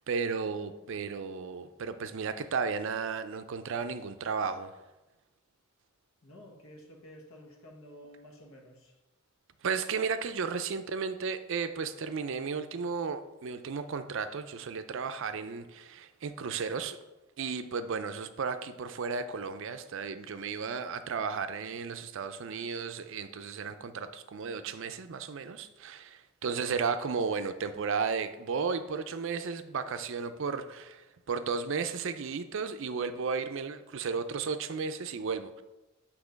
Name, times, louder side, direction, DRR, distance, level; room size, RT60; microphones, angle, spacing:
voice 1, 0.1-4.7 9.6-17.0 17.4-35.6, right 5 dB, 65° right, 10 dB, 0.4 m, -34 dB
voice 2, 6.2-9.0, equal, 85° left, 1 dB, 1.3 m, -51 dB
8.3 x 2.9 x 5.1 m, 1.1 s
head